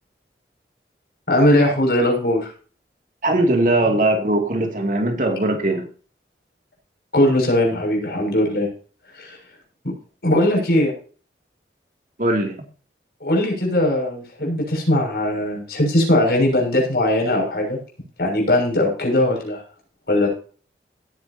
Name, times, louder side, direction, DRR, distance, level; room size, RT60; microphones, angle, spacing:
voice 1, 1.3-2.5 7.1-8.7 9.1-9.4 9.8-9.9 10.2-10.9 13.2-17.8 18.2-19.6 20.1-20.3, left 1 dB, 65° left, 0 dB, 6.4 m, -19 dB
voice 2, 3.2-5.9 12.2-12.6, right 1 dB, 45° right, 3 dB, 2.5 m, -20 dB
17.0 x 9.8 x 2.8 m, 0.40 s
head